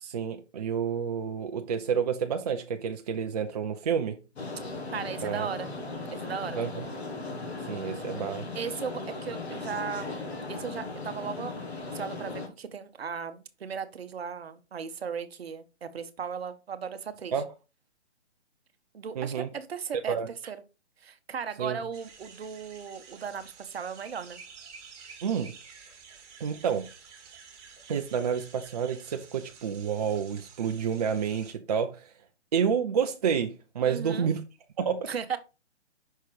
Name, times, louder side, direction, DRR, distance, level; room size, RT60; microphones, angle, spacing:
voice 1, 0.0-4.2 5.2-5.5 6.6-6.9 7.7-8.5 17.3-17.5 19.2-19.5 20.1-20.3 21.6-21.8 25.2-25.5 26.4-26.9 27.9-32.1 32.5-34.4 34.8-35.1, right 7 dB, 35° right, 0.6 m, -29 dB
sound 1, 4.3-12.5, left 3 dB, 65° left, 2.2 m, -37 dB
voice 2, 4.9-5.7 6.1-6.6 8.5-11.5 11.9-17.3 18.9-20.6 21.0-24.4 33.8-34.3 35.1-35.4, right 7 dB, 60° right, 1.0 m, -37 dB
sound 2, 21.9-31.5, right 5 dB, 20° right, 1.5 m, -51 dB
5.8 x 4.5 x 4.7 m
hypercardioid pair, 150°, 35 cm